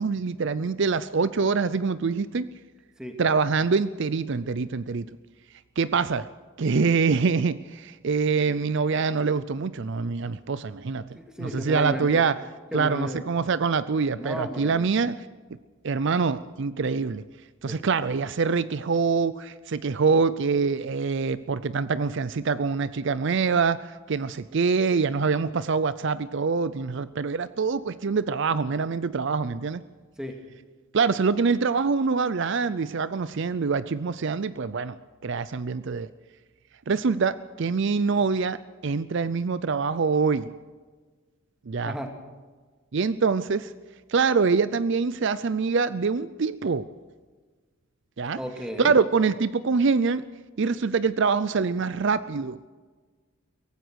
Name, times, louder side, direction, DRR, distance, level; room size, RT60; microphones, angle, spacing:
voice 1, 0.0-2.5 3.2-5.1 5.8-6.3 6.6-11.1 11.4-12.4 12.7-15.3 15.8-17.2 17.6-29.8 30.9-35.0 35.2-36.1 36.9-40.5 41.7-41.9 42.9-43.7 44.1-46.9 48.2-48.4 48.8-50.2 50.6-52.6, right 5 dB, 55° right, 15 dB, 0.5 m, -25 dB
voice 2, 11.1-12.2 12.7-13.2 14.2-14.9 17.7-17.8 30.2-30.3 41.8-42.1 48.4-49.0, equal, 5° right, 3 dB, 2.4 m, -34 dB
23.0 x 18.0 x 6.4 m, 1.4 s
head